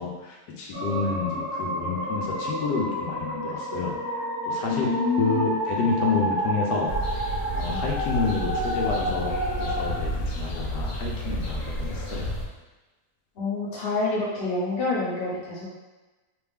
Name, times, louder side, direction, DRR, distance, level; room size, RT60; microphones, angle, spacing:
voice 1, 0.0-4.0 4.4-4.9 5.2-6.9 7.5-12.3, left 4 dB, 85° left, -1 dB, 1.3 m, -29 dB
sound 1, 0.7-10.0, right 1 dB, 20° right, 0.7 m, -30 dB
voice 2, 4.7-5.4 7.7-7.8 13.4-15.6, left 3 dB, 40° left, -6 dB, 1.0 m, -27 dB
sound 2, 6.9-12.4, equal, 60° left, 1.1 m, -31 dB
3.4 x 3.0 x 3.4 m, 1.2 s
omnidirectional pair, 1.8 m